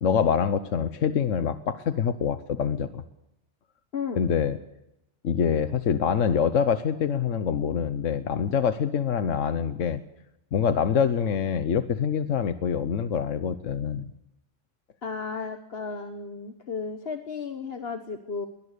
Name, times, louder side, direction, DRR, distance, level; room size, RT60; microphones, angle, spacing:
voice 1, 0.0-3.0 4.2-4.6 5.2-10.0 10.5-14.1, left 7 dB, 75° left, 10 dB, 1.3 m, -25 dB
voice 2, 15.0-18.5, left 5 dB, 50° left, 6 dB, 1.5 m, -34 dB
22.5 x 19.5 x 6.8 m, 0.86 s
omnidirectional pair, 1.3 m